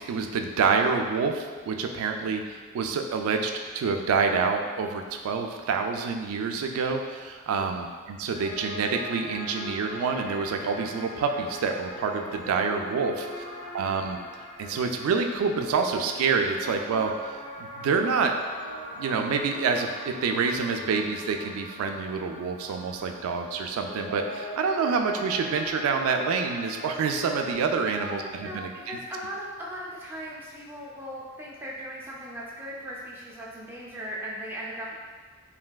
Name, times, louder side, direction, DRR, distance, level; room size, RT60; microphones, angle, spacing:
voice 1, 0.0-13.4 13.7-14.2 14.6-18.4 18.9-29.0, right 5 dB, 80° right, 8 dB, 0.3 m, -27 dB
sound 1, 8.3-27.5, equal, 85° left, 1.3 m, -41 dB
voice 2, 13.2-13.8 27.9-35.0, equal, 10° right, -6 dB, 0.4 m, -38 dB
3.2 x 2.6 x 2.2 m, 1.5 s
head